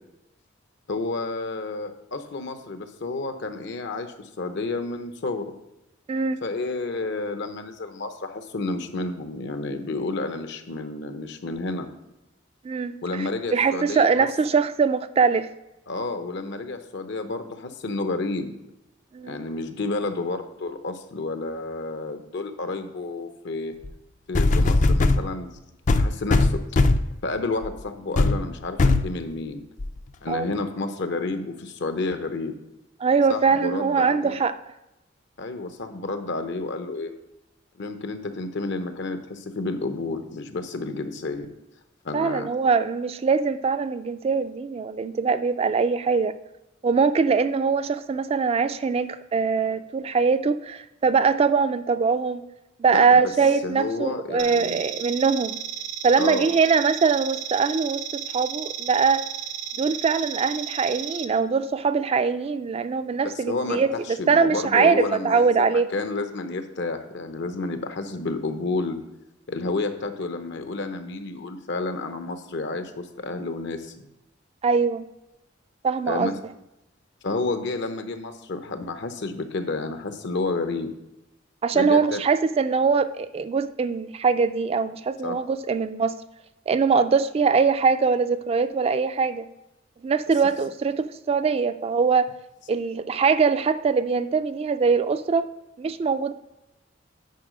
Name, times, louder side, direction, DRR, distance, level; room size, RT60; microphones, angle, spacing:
voice 1, 0.9-5.5 6.4-11.9 13.0-14.3 15.9-18.5 19.2-23.7 24.3-25.5 25.9-26.6 27.2-29.6 30.2-32.5 33.3-34.4 35.4-37.1 37.8-41.5 42.0-42.5 52.9-53.3 53.6-54.8 56.2-56.5 63.3-69.0 69.5-74.1 76.0-76.4 77.2-80.9 81.7-82.2 85.2-85.4, left 3 dB, 60° left, 8 dB, 0.8 m, -30 dB
voice 2, 6.1-6.4 12.6-15.5 19.1-19.4 30.3-30.5 33.0-34.5 42.1-46.3 46.8-52.4 52.8-55.6 56.0-59.2 59.8-63.9 64.3-65.9 74.6-75.1 75.8-76.3 81.6-86.1 86.7-89.5 90.0-92.3 92.7-95.5 95.8-96.3, right 5 dB, 30° right, 11 dB, 0.3 m, -22 dB
sound 1, 23.8-23.9 24.3-25.2 25.9-27.1 27.6-27.8 28.2-28.4 28.8-29.1 29.8-29.9, left 2 dB, 40° left, 0.4 m, -19 dB
sound 2, 54.4-61.2, right 9 dB, 65° right, 0.6 m, -34 dB
9.4 x 4.7 x 5.0 m, 0.92 s
head